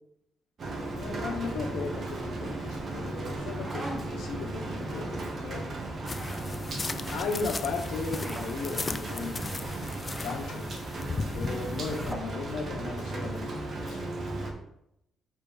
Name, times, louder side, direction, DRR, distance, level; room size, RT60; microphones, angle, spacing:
Rain, 0.6-14.5, right 2 dB, 45° right, 1.4 m, -36 dB
voice 1, 0.9-5.7 7.1-9.8 10.2-10.7 11.3-14.0, left 4 dB, 80° left, 2 dB, 1.2 m, -36 dB
sound 1, 3.2-4.3 5.9-6.5 8.0-8.5 10.0-10.4 11.7-12.3, right 1 dB, 15° right, 0.9 m, -42 dB
sound 2, 6.1-12.1, left 4 dB, 30° left, 0.3 m, -37 dB
4.9 x 3.7 x 5.7 m, 0.80 s
cardioid pair, 90°, 0 cm